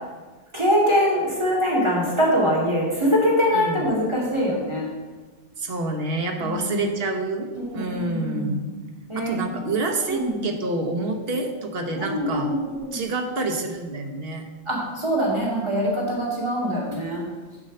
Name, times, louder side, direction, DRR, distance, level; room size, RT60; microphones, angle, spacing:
voice 1, 0.5-4.9 6.4-6.9 7.6-8.6 9.1-9.5 10.1-10.4 12.0-13.0 14.7-17.2, equal, 25° right, -5 dB, 2.4 m, -23 dB
voice 2, 3.5-3.8 5.6-8.8 9.1-12.5 12.9-14.4, right 2 dB, 55° right, 3 dB, 1.2 m, -28 dB
7.5 x 5.5 x 6.5 m, 1.3 s
omnidirectional pair, 1.2 m